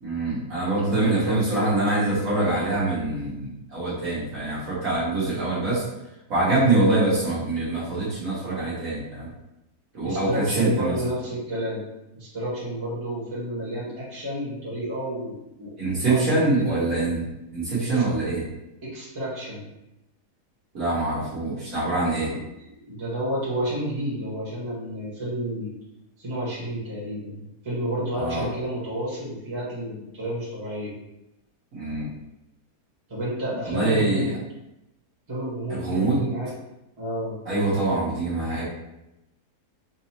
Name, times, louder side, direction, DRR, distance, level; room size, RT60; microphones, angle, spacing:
voice 1, 0.0-5.8 6.3-9.3 9.9-10.9 15.8-17.2 17.5-18.4 20.7-22.3 28.1-28.4 31.7-32.1 33.7-34.3 35.7-36.3 37.4-38.6, right 2 dB, 55° right, -9 dB, 1.6 m, -24 dB
voice 2, 0.8-1.7 10.0-11.9 12.1-15.7 16.1-16.8 17.9-18.0 18.8-19.6 22.3-25.7 26.2-30.9 33.1-34.3 35.3-36.5 37.0-37.4, equal, 20° right, -9 dB, 1.3 m, -31 dB
4.0 x 2.7 x 2.8 m, 0.89 s
omnidirectional pair, 1.8 m